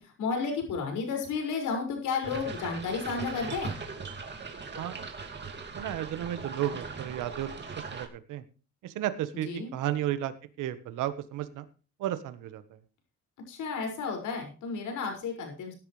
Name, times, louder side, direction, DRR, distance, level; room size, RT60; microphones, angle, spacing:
voice 1, 0.0-3.8 9.4-9.7 13.5-15.7, left 5 dB, 80° left, 3 dB, 5.9 m, -32 dB
sound 1, 2.2-8.1, right 4 dB, 35° right, 2.5 m, -40 dB
voice 2, 4.8-5.1 5.7-7.5 7.9-8.4 8.8-11.7 12.0-12.6, right 12 dB, 90° right, 12 dB, 1.4 m, -33 dB
17.0 x 11.0 x 3.3 m, 0.36 s
cardioid pair, 90°, 30 cm